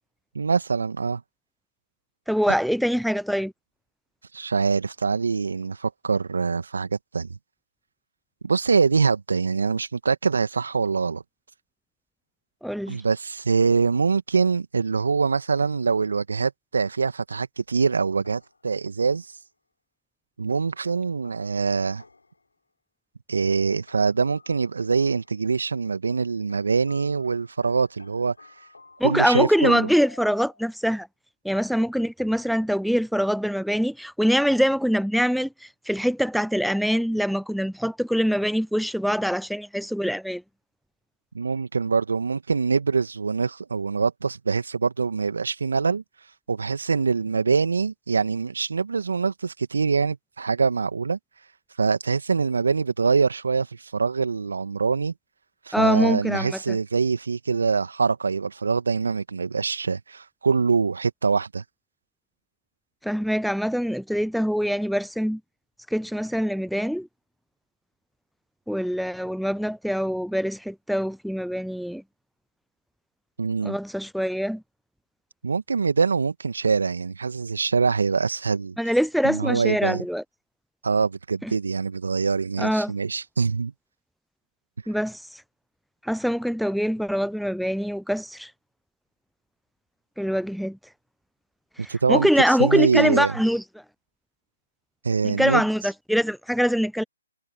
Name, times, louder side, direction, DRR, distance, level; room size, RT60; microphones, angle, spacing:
voice 1, 0.3-1.2 4.3-7.4 8.4-11.2 12.9-19.3 20.4-22.0 23.3-28.3 29.0-29.9 41.3-46.0 46.5-51.2 51.8-55.1 55.7-61.6 73.4-73.8 75.4-78.8 79.2-80.0 80.8-83.7 91.9-92.3 92.6-93.3 95.0-95.6, right 5 dB, 70° right, 2.2 m, -24 dB
voice 2, 2.3-3.5 12.6-13.0 29.0-31.1 31.4-40.4 55.7-56.8 63.0-65.4 65.9-67.1 68.7-72.0 73.6-74.6 78.8-80.2 81.4-81.5 82.6-82.9 84.9-85.4 86.0-88.5 90.2-90.8 91.8-93.6 95.2-97.0, equal, ahead, 0.5 m, -24 dB
sound 1, 18.2-19.5 20.5-22.5 23.5-25.5 26.5-30.8, left 3 dB, 80° left, 6.6 m, -52 dB
figure-of-eight pair, 135°, 0 cm